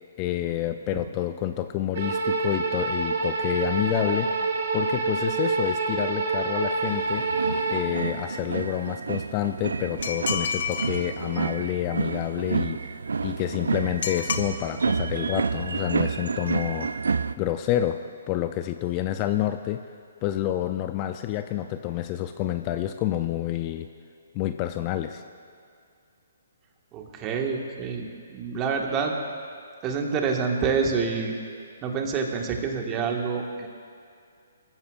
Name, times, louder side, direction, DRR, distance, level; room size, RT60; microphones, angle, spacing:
voice 1, 0.2-4.3 4.7-7.2 7.7-12.9 13.2-17.0 17.4-18.0 18.3-19.8 20.2-23.9 24.3-25.2, left 13 dB, 30° left, 9 dB, 0.5 m, -28 dB
sound 1, 1.9-7.8, right 3 dB, 55° right, 1.8 m, -27 dB
sound 2, 6.8-17.3, right 5 dB, 75° right, 0.4 m, -29 dB
sound 3, 10.0-11.0 14.0-14.5, left 7 dB, 55° left, 0.9 m, -29 dB
voice 2, 26.9-29.1 29.8-31.3 31.8-33.7, right 5 dB, 25° right, 2 dB, 1.7 m, -27 dB
25.0 x 14.5 x 2.5 m, 2.3 s
figure-of-eight pair, 130°, 0 cm